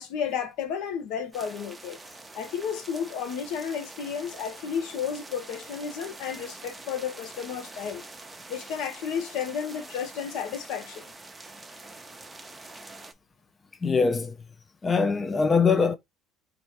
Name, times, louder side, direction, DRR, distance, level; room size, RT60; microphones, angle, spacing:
voice 1, 0.0-2.0 2.3-8.0 8.5-11.1, left 7 dB, 75° left, 1.0 m, -32 dB
sound 1, 1.3-13.1, right 2 dB, 15° right, 0.8 m, -45 dB
voice 2, 13.8-14.3 14.8-16.0, left 5 dB, 25° left, 0.5 m, -22 dB
4.4 x 2.7 x 4.4 m
supercardioid pair, 95°, 0 cm